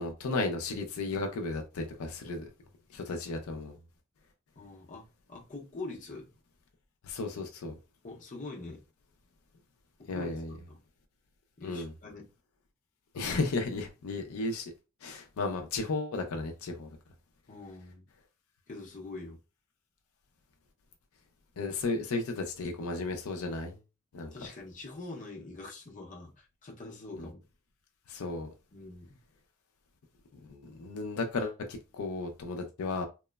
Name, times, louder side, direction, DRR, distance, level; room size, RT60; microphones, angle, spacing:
voice 1, 0.0-2.5 2.9-3.8 7.0-7.8 10.1-10.5 11.6-11.9 13.1-14.7 15.0-16.9 21.6-23.8 24.1-24.3 27.2-27.3 28.1-28.5 30.5-33.1, left 3 dB, 80° left, 0.5 m, -34 dB
voice 2, 4.6-6.3 8.0-8.8 10.0-10.8 11.6-12.3 17.5-18.1 18.7-19.4 24.3-27.4 28.7-29.1, left 2 dB, 35° left, 0.6 m, -44 dB
2.9 x 2.0 x 2.2 m
head